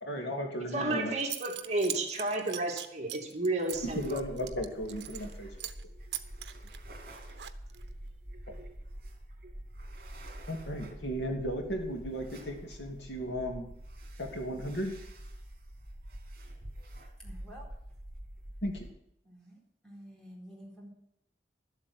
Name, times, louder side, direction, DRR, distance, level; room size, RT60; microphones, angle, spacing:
voice 1, 0.0-1.1 4.0-5.5 10.5-13.7 14.2-14.9 18.6-18.9, equal, 80° left, 2 dB, 2.6 m, -35 dB
voice 2, 0.7-4.2, right 2 dB, 40° right, 1 dB, 2.5 m, -32 dB
Zipper (clothing) / Coin (dropping), 0.8-0.9 1.2-5.3 5.6-5.8 6.1-7.9, right 13 dB, 85° right, 0.9 m, -41 dB
sound 1, 3.7-18.9, right 1 dB, 55° right, 2.9 m, -46 dB
voice 3, 17.2-17.7 19.2-20.9, equal, 5° left, -3 dB, 4.3 m, -50 dB
12.5 x 7.9 x 7.9 m, 0.79 s
head